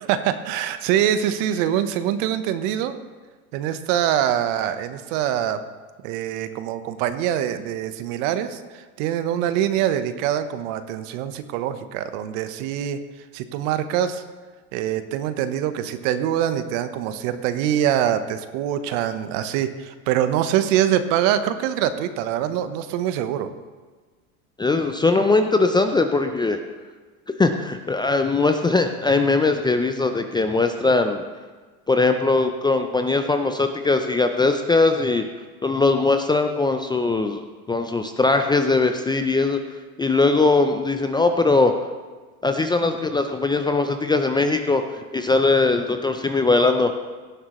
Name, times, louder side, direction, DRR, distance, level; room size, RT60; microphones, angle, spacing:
voice 1, 0.0-2.9 3.5-5.6 6.0-13.0 13.3-14.2 14.7-23.5, right 10 dB, 55° right, 10 dB, 1.1 m, -24 dB
voice 2, 24.6-26.6 27.4-31.2 31.9-35.2 35.6-39.6 40.0-41.7 42.4-44.8 45.1-46.9, left 3 dB, 10° left, 6 dB, 0.5 m, -20 dB
17.5 x 11.0 x 3.1 m, 1.4 s
hypercardioid pair, 105°, 44 cm